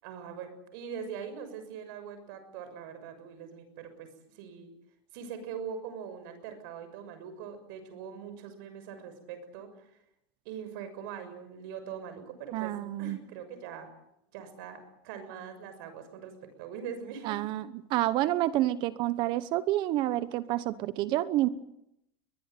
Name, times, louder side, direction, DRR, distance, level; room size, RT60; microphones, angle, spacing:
voice 1, 0.0-4.7 5.1-9.7 10.4-13.9 14.3-17.4, right 7 dB, 60° right, 9 dB, 6.6 m, -42 dB
voice 2, 12.5-13.2 17.2-17.6 17.9-21.5, right 15 dB, 40° right, 15 dB, 1.0 m, -28 dB
23.0 x 21.0 x 9.3 m, 0.81 s
supercardioid pair, 160°, 13 cm